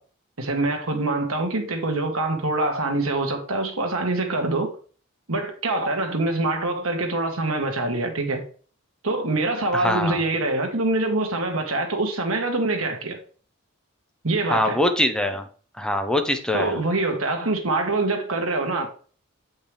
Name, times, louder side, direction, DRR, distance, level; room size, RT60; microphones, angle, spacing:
voice 1, 0.4-4.7 5.3-8.4 9.0-13.2 14.2-14.8 16.5-18.9, right 2 dB, 90° right, 1.6 m, -24 dB
voice 2, 9.7-10.2 14.5-15.4 15.8-16.8, left 1 dB, 5° left, 0.7 m, -23 dB
8.6 x 5.3 x 3.4 m
head